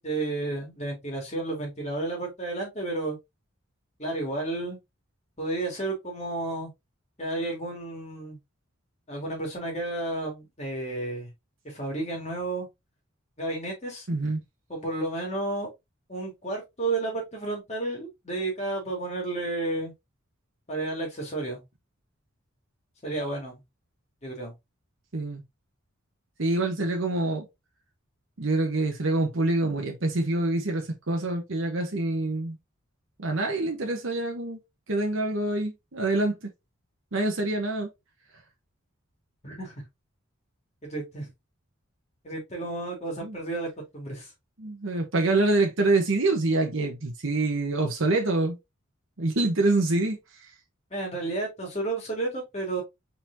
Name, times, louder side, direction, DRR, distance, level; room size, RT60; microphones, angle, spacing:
voice 1, 0.0-3.2 4.0-4.8 5.4-6.7 7.2-8.4 9.1-11.3 11.6-12.7 13.4-14.1 14.7-15.7 16.1-19.9 20.7-21.6 23.0-23.6 24.2-24.5 39.4-39.7 40.8-41.3 42.2-44.3 50.9-52.8, right 2 dB, 30° left, 2.3 m, -32 dB
voice 2, 14.1-14.4 25.1-25.4 26.4-27.5 28.4-32.6 33.2-34.6 34.9-36.5 37.1-37.9 43.2-43.4 44.6-48.6 49.2-50.2, right 2 dB, 70° right, 1.1 m, -26 dB
4.3 x 4.1 x 2.7 m
head